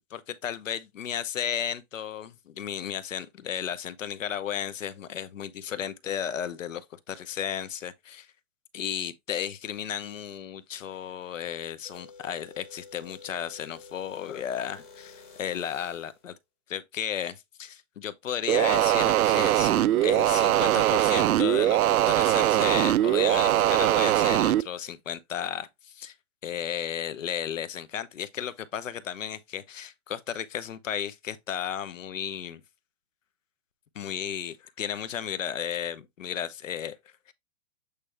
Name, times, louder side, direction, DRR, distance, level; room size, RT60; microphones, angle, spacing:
voice 1, 0.0-8.3 8.7-16.3 16.7-26.1 26.4-32.6 33.9-37.0, left 9 dB, 65° left, 0.9 m, -34 dB
sound 1, 11.8-16.3, left 4 dB, 25° left, 1.5 m, -50 dB
sound 2, 18.5-24.6, right 13 dB, 85° right, 0.6 m, -22 dB
8.3 x 3.3 x 3.4 m
hypercardioid pair, 180°, 42 cm